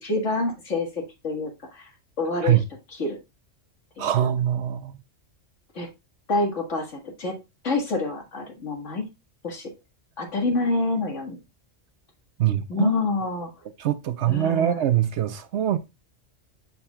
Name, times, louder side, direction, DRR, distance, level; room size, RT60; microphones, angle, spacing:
voice 1, 0.0-1.9 2.2-2.6 2.9-3.2 4.0-4.2 5.8-5.9 6.3-7.4 7.6-9.1 9.4-9.7 10.2-11.4 12.7-13.5 14.3-14.9, left 3 dB, 70° left, 2.1 m, -27 dB
voice 2, 4.0-5.0 12.4-12.9 13.8-15.8, right 11 dB, 65° right, 0.9 m, -23 dB
7.1 x 6.9 x 2.3 m
omnidirectional pair, 1.3 m